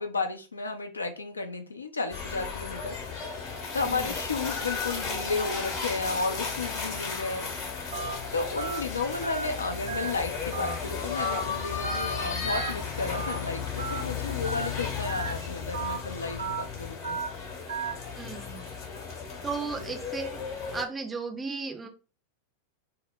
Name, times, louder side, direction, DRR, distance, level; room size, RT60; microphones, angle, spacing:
voice 1, 0.0-7.5 8.3-17.2 19.8-19.9, left 3 dB, 75° left, 0.4 m, -33 dB
sound 1, 2.1-20.8, left 5 dB, 40° left, 0.8 m, -34 dB
Telephone, 7.9-8.1 8.6-8.8 9.2-9.4 9.9-10.1 10.5-10.8 11.2-11.4 11.8-12.1 12.5-12.7 13.1-13.4 13.8-14.0 14.4-14.7 15.1-15.3 15.7-16.0 16.4-16.6 17.0-17.3 17.7-17.9, right 5 dB, 60° right, 0.6 m, -34 dB
voice 2, 18.2-18.7 19.4-20.4 20.7-21.9, right 4 dB, 15° right, 0.4 m, -35 dB
2.1 x 2.0 x 3.5 m
figure-of-eight pair, 90°, 0 cm